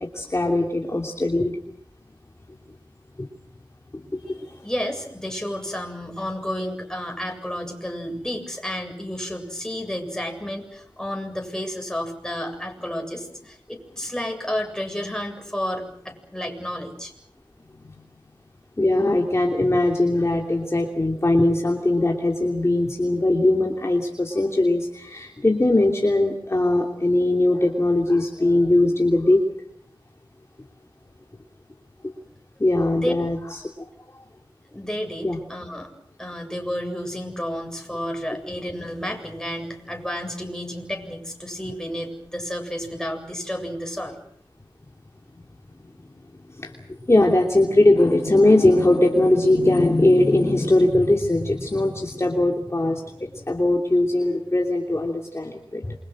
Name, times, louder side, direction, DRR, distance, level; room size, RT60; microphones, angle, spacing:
voice 1, 0.0-1.6 3.2-3.3 3.9-4.5 17.8-17.9 18.8-29.4 32.6-33.7 35.2-35.4 46.5-46.7 47.0-55.9, left 2 dB, 30° left, 1 dB, 3.1 m, -20 dB
voice 2, 4.2-17.1 32.9-33.1 34.7-35.9 36.2-44.2, equal, 5° left, 2 dB, 7.7 m, -31 dB
28.0 x 24.5 x 6.4 m, 0.68 s
wide cardioid pair, 70°, 9 cm